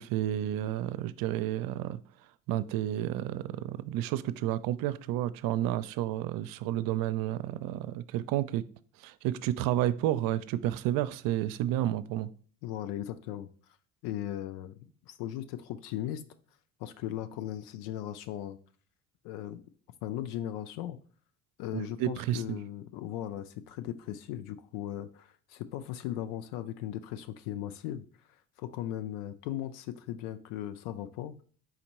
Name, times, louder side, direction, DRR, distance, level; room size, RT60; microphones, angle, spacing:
voice 1, 0.0-2.0 2.5-8.6 9.0-12.3 21.7-22.6, right 13 dB, 55° right, 0.5 m, -31 dB
voice 2, 12.6-13.5 14.0-16.2 16.8-18.6 19.2-19.6 20.0-21.0 21.6-28.0 28.6-31.4, left 12 dB, 70° left, 0.5 m, -37 dB
4.3 x 3.8 x 2.9 m
hypercardioid pair, 55°, 40 cm